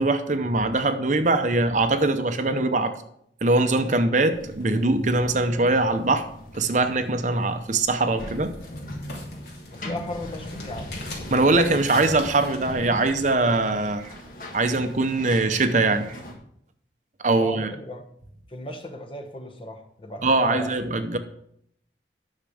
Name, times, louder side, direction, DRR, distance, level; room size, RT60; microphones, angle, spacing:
voice 1, 0.0-2.9 3.4-6.3 6.5-8.5 11.3-14.1 14.5-16.2 17.2-17.7 20.2-21.2, right 2 dB, 45° right, 8 dB, 0.7 m, -22 dB
sound 1, 4.3-16.3, left 1 dB, 50° left, 1.6 m, -39 dB
sound 2, 7.9-12.7, left 3 dB, 70° left, 3.0 m, -43 dB
voice 2, 9.7-11.0 17.4-18.0 18.5-20.7, left 1 dB, 30° left, 4 dB, 1.1 m, -36 dB
10.5 x 6.5 x 5.0 m, 0.70 s
head